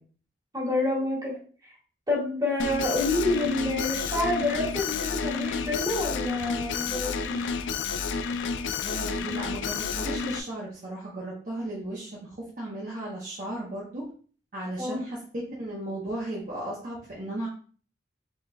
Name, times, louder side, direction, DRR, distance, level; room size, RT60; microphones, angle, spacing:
voice 1, 0.5-1.4 1.6-1.7 2.1-7.5 14.8-15.0, left 2 dB, 20° right, -5 dB, 1.8 m, -28 dB
Alarm, 2.6-10.4, left 5 dB, 85° left, 0.4 m, -30 dB
voice 2, 8.8-14.0 14.5-17.5, right 1 dB, 45° right, -5 dB, 1.0 m, -35 dB
5.2 x 3.8 x 2.3 m, 0.41 s
head